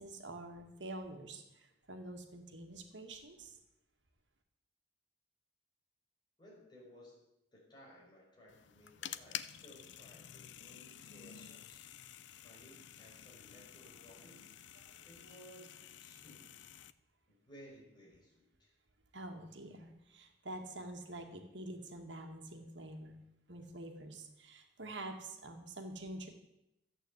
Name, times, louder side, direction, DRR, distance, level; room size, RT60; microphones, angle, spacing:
voice 1, 0.0-3.6 19.1-23.2 23.5-26.3, right 1 dB, 90° right, 4 dB, 2.1 m, -47 dB
voice 2, 6.4-7.2 7.5-11.9 12.4-16.6 17.3-18.7, equal, 25° left, -4 dB, 6.0 m, -59 dB
sound 1, 8.5-16.9, left 10 dB, 85° left, 0.6 m, -50 dB
14.0 x 8.8 x 8.1 m, 0.88 s
head